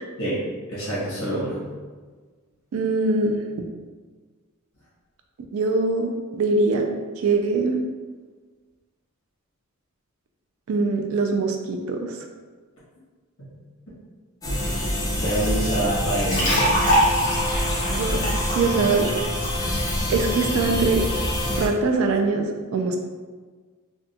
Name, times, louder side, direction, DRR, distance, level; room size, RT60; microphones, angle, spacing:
voice 1, 0.2-1.7 13.9-14.0 14.4-14.9 15.2-16.8, right 1 dB, 65° left, -8 dB, 1.4 m, -27 dB
voice 2, 2.7-3.4 5.5-6.9 7.2-7.8 10.7-12.2 17.9-19.1 20.1-21.0 21.6-23.0, right 3 dB, 65° right, 4 dB, 0.3 m, -23 dB
sound 1, 14.4-21.7, left 1 dB, 15° left, 0.5 m, -26 dB
sound 2, 16.1-19.9, equal, 35° left, 0.9 m, -24 dB
3.6 x 2.2 x 2.7 m, 1.4 s
head